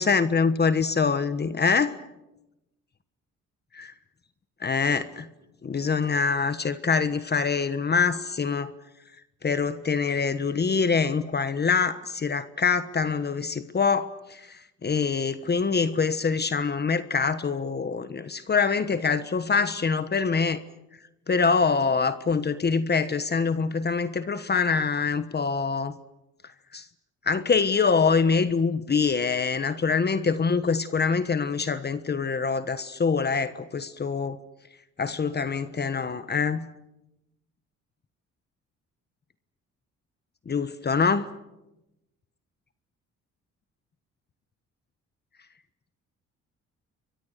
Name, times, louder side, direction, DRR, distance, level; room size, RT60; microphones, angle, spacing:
voice 1, 0.0-2.0 3.7-3.9 4.6-5.3 5.6-8.7 9.4-20.6 21.3-26.0 26.7-26.8 27.3-34.4 35.0-36.6 40.5-41.3, left 5 dB, 35° left, 12 dB, 1.3 m, -25 dB
30.0 x 23.5 x 6.7 m, 0.92 s
cardioid pair, 90°, 30 cm